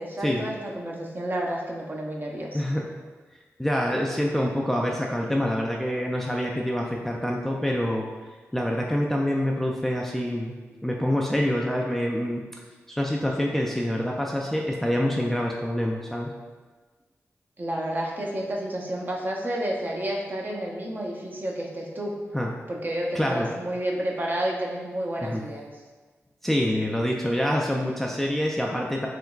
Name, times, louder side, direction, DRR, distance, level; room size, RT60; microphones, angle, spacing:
voice 1, 0.0-2.6 17.6-22.1 22.7-25.7, right 1 dB, 35° right, -2 dB, 0.6 m, -30 dB
voice 2, 3.6-8.1 8.5-10.5 10.8-12.4 12.9-16.3 22.3-22.5 23.1-23.5 25.2-25.4 26.4-29.1, equal, 5° left, -1 dB, 0.3 m, -26 dB
3.4 x 2.9 x 2.3 m, 1.4 s
cardioid pair, 60°, 5 cm